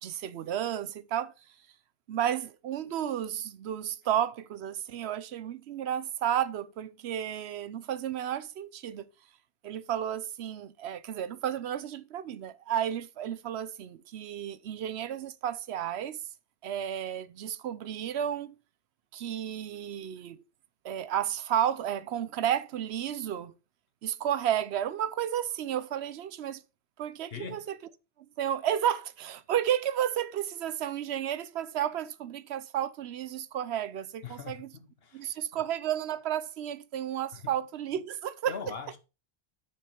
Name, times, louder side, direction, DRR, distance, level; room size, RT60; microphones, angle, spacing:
voice 1, 0.0-1.3 2.1-9.1 9.6-16.2 16.6-18.6 19.1-20.4 20.8-23.5 24.0-26.6 27.0-27.8 28.4-34.7 35.1-38.6, right 10 dB, 75° right, 0.9 m, -32 dB
voice 2, 27.3-27.6 34.2-35.6 37.3-37.5 38.5-39.0, left 6 dB, 65° left, 1.4 m, -42 dB
6.8 x 6.2 x 4.4 m
omnidirectional pair, 1.1 m